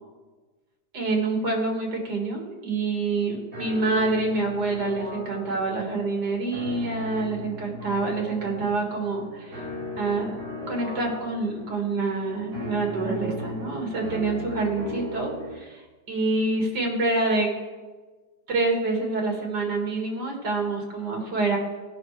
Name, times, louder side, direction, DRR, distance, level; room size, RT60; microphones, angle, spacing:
voice 1, 0.9-9.6 10.0-10.3 10.7-17.5 18.5-21.6, right 3 dB, 80° right, 0 dB, 2.6 m, -27 dB
sound 1, 3.5-15.5, left 1 dB, 60° right, 4.3 m, -37 dB
15.5 x 5.8 x 4.8 m, 1.3 s
omnidirectional pair, 1.8 m